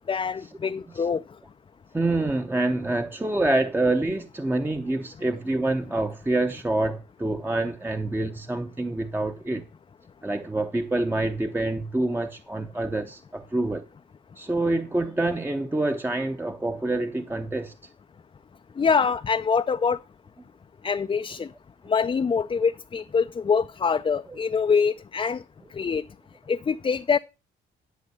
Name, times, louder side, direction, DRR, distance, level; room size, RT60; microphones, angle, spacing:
voice 1, 0.1-1.2 18.8-20.0 20.8-21.5 21.9-25.4 25.7-26.0 26.5-27.2, left 5 dB, 25° left, 0.5 m, -24 dB
voice 2, 1.9-9.6 10.2-13.8 14.4-17.7 24.3-24.4, right 2 dB, 10° right, 0.7 m, -26 dB
11.5 x 6.2 x 5.5 m
cardioid pair, 90°, 20 cm